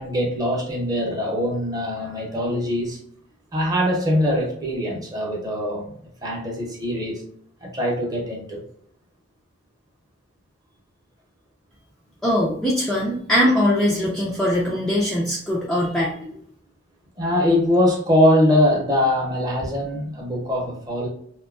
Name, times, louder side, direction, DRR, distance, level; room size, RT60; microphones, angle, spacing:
voice 1, 0.0-3.0 3.5-5.9 6.2-7.2 7.6-8.6 17.2-21.1, left 1 dB, 20° right, -2 dB, 0.7 m, -22 dB
voice 2, 12.2-16.4, left 1 dB, 5° left, -6 dB, 0.3 m, -21 dB
2.7 x 2.2 x 2.4 m, 0.64 s
head